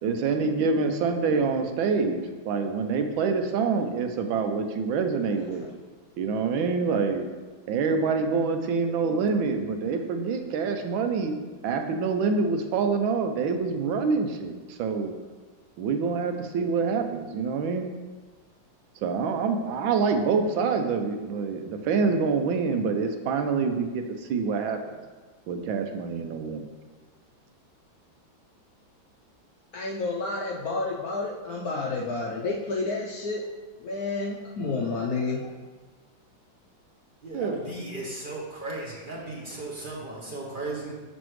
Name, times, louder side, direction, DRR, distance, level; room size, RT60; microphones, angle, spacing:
voice 1, 0.0-5.7 6.2-7.3 7.7-11.3 11.6-15.2 15.8-17.9 19.0-25.0 25.5-26.6 37.3-37.6, right 5 dB, 80° right, 6 dB, 1.4 m, -26 dB
voice 2, 29.7-33.5 33.8-35.5, left 3 dB, 70° left, -2 dB, 0.9 m, -30 dB
voice 3, 37.2-41.0, right 2 dB, 40° right, -3 dB, 0.7 m, -36 dB
6.8 x 6.2 x 3.1 m, 1.3 s
omnidirectional pair, 2.2 m